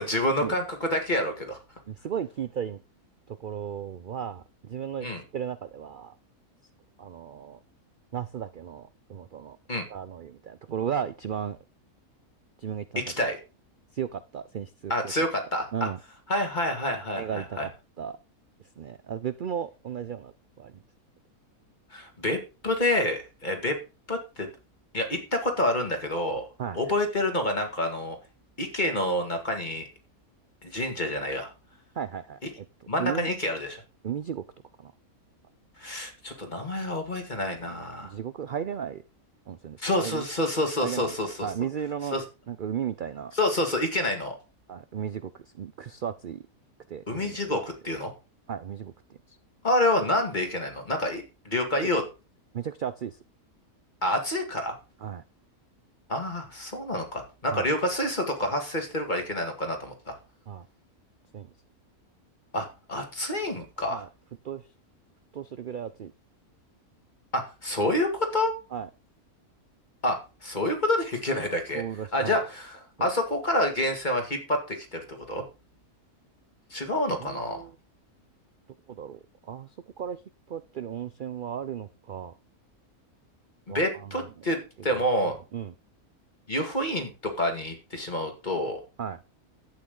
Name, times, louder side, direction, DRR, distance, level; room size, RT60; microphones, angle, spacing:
voice 1, 0.0-1.6 5.0-5.2 9.7-9.8 13.0-13.4 14.9-15.9 16.3-17.7 21.9-22.4 22.6-23.8 24.1-24.5 24.9-26.4 26.7-28.2 28.6-29.9 30.6-31.5 32.9-33.8 35.8-38.1 39.8-41.5 42.1-42.2 43.4-44.4 47.1-48.1 49.6-52.0 54.0-54.7 56.1-60.2 62.5-64.0 67.3-68.5 70.0-71.8 72.1-75.4 76.7-77.6 83.7-85.4 86.5-88.8, left 1 dB, 30° left, 4 dB, 2.4 m, -28 dB
voice 2, 1.9-2.8 3.3-6.2 7.0-7.6 8.1-9.6 9.9-11.6 12.6-13.3 13.9-15.1 15.7-16.0 17.1-17.7 18.0-18.2 18.8-20.8 26.6-26.8 32.0-32.7 33.0-33.3 34.0-34.4 34.8-34.9 38.0-39.0 39.5-40.3 40.8-41.2 41.4-42.2 42.5-43.3 44.7-46.4 46.9-47.4 48.5-48.9 49.3-49.4 51.8-51.9 52.5-53.2 55.0-55.2 57.5-57.7 60.5-60.7 61.3-61.5 63.9-64.1 64.4-64.7 65.3-66.1 68.7-68.9 71.7-72.4 73.0-73.1 77.2-77.7 78.9-80.2 80.5-82.3 83.7-84.4 84.9-85.7 89.0-89.2, right 8 dB, 65° right, 13 dB, 0.5 m, -35 dB
11.5 x 8.8 x 3.8 m, 0.31 s
omnidirectional pair, 1.6 m